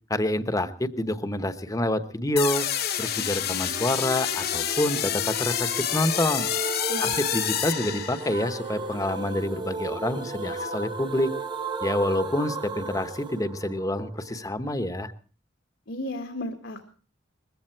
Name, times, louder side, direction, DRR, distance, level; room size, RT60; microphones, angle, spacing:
voice 1, 0.1-2.7 3.0-6.5 7.0-11.3 11.8-15.1, left 1 dB, 20° left, 11 dB, 1.0 m, -27 dB
sound 1, 2.4-8.5, left 10 dB, 55° left, 1.2 m, -28 dB
sound 2, 3.5-14.4, right 3 dB, 25° right, 1.0 m, -35 dB
voice 2, 15.9-16.8, left 1 dB, 80° left, 4 dB, 1.8 m, -34 dB
21.0 x 15.5 x 4.5 m, 0.39 s
head